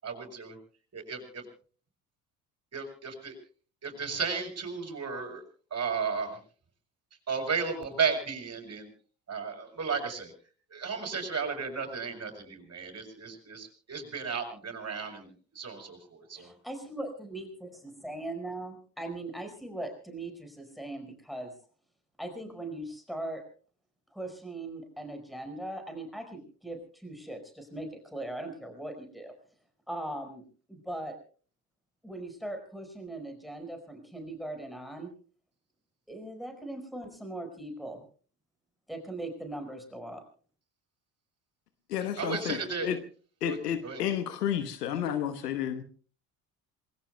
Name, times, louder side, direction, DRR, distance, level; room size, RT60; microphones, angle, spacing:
voice 1, 0.0-0.6 0.9-1.4 2.7-3.3 3.8-5.4 5.7-6.4 7.3-8.9 9.3-10.3 10.7-16.5 42.2-42.9 43.4-43.6 43.8-44.0, right 5 dB, 35° right, 7.2 m, -34 dB
voice 2, 16.4-17.7 18.0-21.5 22.2-23.4 24.1-29.3 29.9-30.4 30.7-31.1 32.0-35.1 36.1-38.0 38.9-40.2, right 1 dB, ahead, 4.9 m, -39 dB
voice 3, 41.9-43.0 43.4-45.8, left 10 dB, 85° left, 1.2 m, -31 dB
27.5 x 21.0 x 2.2 m
hypercardioid pair, 65°, 46 cm